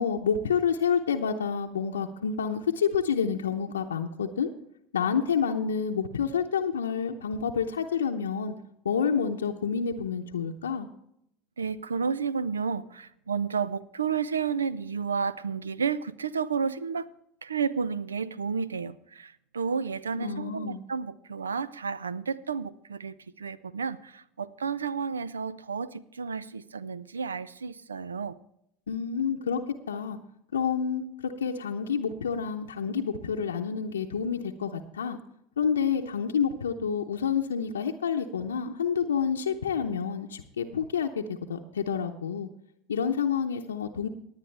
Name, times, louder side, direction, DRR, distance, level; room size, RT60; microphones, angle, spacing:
voice 1, 0.0-4.5 4.9-8.5 8.8-10.9 20.2-20.8 28.9-29.6 29.9-30.2 30.5-35.2 35.6-42.5 42.9-44.1, left 6 dB, 85° left, 2 dB, 0.7 m, -28 dB
voice 2, 11.6-17.1 17.4-28.4, right 6 dB, 90° right, 18 dB, 0.5 m, -31 dB
18.5 x 9.2 x 3.3 m, 0.75 s
hypercardioid pair, 80°, 0 cm